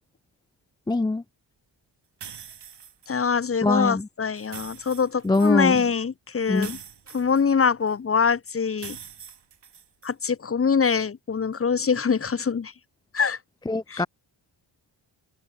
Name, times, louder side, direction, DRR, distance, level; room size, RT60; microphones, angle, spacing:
voice 1, 0.9-1.2 3.6-4.1 5.2-5.8 6.5-6.7 13.7-14.1, left 2 dB, 10° left, 0.4 m, -22 dB
sound 1, 2.2-3.1 4.4-5.6 6.6-7.9 8.8-10.1, right 7 dB, 60° right, 3.1 m, -43 dB
voice 2, 3.1-6.8 7.1-9.0 10.0-12.7 13.1-13.4 13.9-14.0, left 6 dB, 30° left, 0.8 m, -24 dB
cardioid pair, 80°, 46 cm